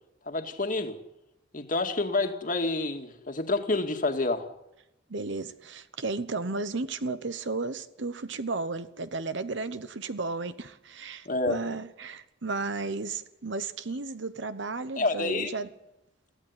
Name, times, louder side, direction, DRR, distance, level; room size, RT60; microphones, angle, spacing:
voice 1, 0.3-1.0 1.5-4.5 11.3-11.6 15.0-15.5, left 2 dB, 45° left, 2.1 m, -28 dB
voice 2, 5.1-15.7, right 3 dB, 65° right, 1.0 m, -34 dB
22.5 x 16.0 x 9.7 m
head